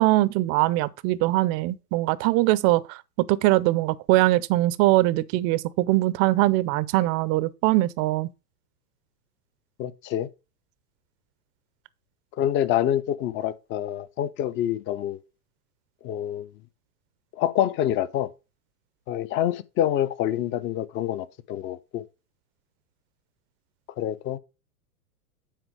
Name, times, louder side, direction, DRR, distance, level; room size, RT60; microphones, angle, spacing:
voice 1, 0.0-3.0 3.3-8.3, right 18 dB, 30° right, 0.5 m, -22 dB
voice 2, 9.8-10.3 12.4-15.2 16.0-16.5 17.3-18.3 19.1-22.0 24.0-24.4, left 11 dB, 25° left, 0.6 m, -26 dB
9.1 x 4.5 x 4.8 m
hypercardioid pair, 110°, 47 cm